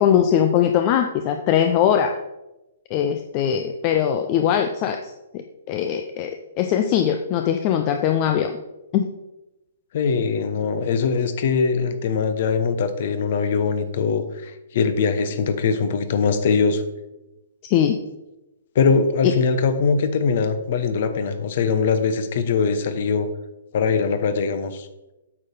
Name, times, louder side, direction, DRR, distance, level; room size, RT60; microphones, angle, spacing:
voice 1, 0.0-2.2 2.9-8.5 8.9-9.1 17.7-18.0 19.2-19.3, left 9 dB, 30° left, 6 dB, 0.6 m, -21 dB
voice 2, 9.9-16.8 18.7-23.3 23.7-24.9, left 5 dB, 45° left, 10 dB, 0.9 m, -22 dB
8.6 x 6.5 x 4.3 m, 0.97 s
figure-of-eight pair, 120°, 0 cm